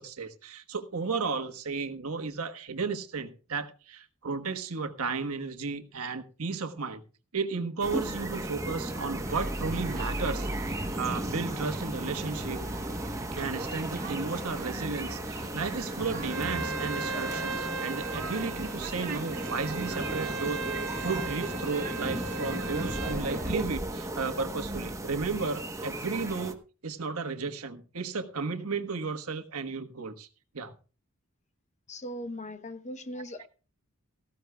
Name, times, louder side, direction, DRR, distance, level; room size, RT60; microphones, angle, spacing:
voice 1, 0.0-7.0 7.3-12.7 13.3-20.6 21.0-30.3 30.5-30.7, right 4 dB, 80° right, 1.3 m, -34 dB
sound 1, 7.8-26.5, right 1 dB, 15° right, 1.0 m, -35 dB
sound 2, 9.2-23.5, right 3 dB, 40° right, 1.6 m, -43 dB
Bowed string instrument, 16.3-23.2, right 3 dB, 60° right, 1.4 m, -37 dB
voice 2, 31.9-33.5, left 1 dB, 35° left, 0.9 m, -39 dB
17.5 x 15.0 x 2.3 m
head